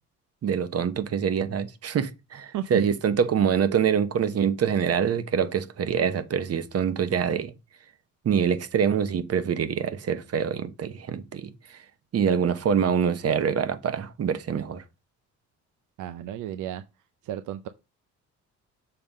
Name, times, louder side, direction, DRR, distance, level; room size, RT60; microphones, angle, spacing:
voice 1, 0.4-7.5 8.2-11.8 12.1-14.8, right 7 dB, 55° right, 1.1 m, -25 dB
voice 2, 16.0-16.8 17.2-17.7, right 11 dB, 85° right, 0.6 m, -33 dB
6.8 x 3.8 x 5.4 m
cardioid pair, 90°, 30 cm